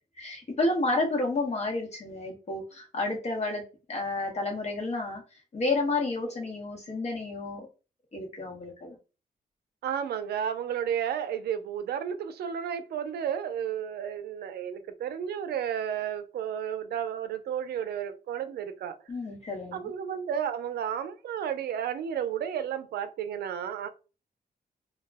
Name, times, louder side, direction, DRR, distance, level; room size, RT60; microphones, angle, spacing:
voice 1, 0.2-3.6 3.9-5.2 5.5-7.7 8.1-9.0 19.1-19.9, left 2 dB, 45° left, 1.0 m, -30 dB
voice 2, 9.8-19.0 19.7-23.9, right 9 dB, 80° right, 0.4 m, -32 dB
2.2 x 2.0 x 3.4 m
cardioid pair, 115°, 16 cm